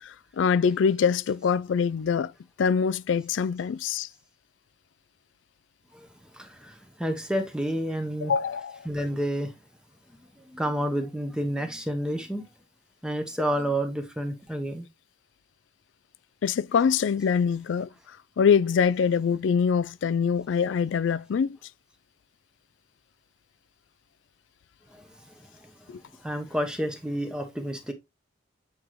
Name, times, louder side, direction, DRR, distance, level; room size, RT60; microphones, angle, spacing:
voice 1, 0.4-2.3 2.6-4.1 8.2-8.9 16.4-17.9 18.4-21.6 25.9-26.0, left 6 dB, 75° left, 0.3 m, -24 dB
voice 2, 6.3-8.3 8.8-9.5 10.4-12.5 13.0-14.9 24.9-25.1 26.2-27.9, equal, 5° right, 0.9 m, -30 dB
8.0 x 5.1 x 3.0 m
head